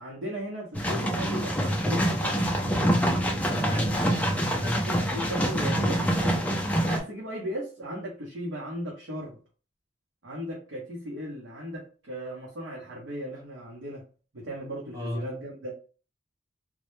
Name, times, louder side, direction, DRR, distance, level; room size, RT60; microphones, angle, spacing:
voice 1, 0.0-1.6 1.9-2.5 4.7-6.5 6.8-9.4 10.2-14.0 14.3-15.7, equal, 65° right, -4 dB, 0.7 m, -36 dB
sound 1, 0.7-7.0, equal, 5° left, 0.3 m, -26 dB
voice 2, 3.5-4.3 4.6-4.8 14.9-15.3, equal, 15° right, -2 dB, 0.7 m, -33 dB
2.1 x 2.0 x 3.0 m, 0.37 s
head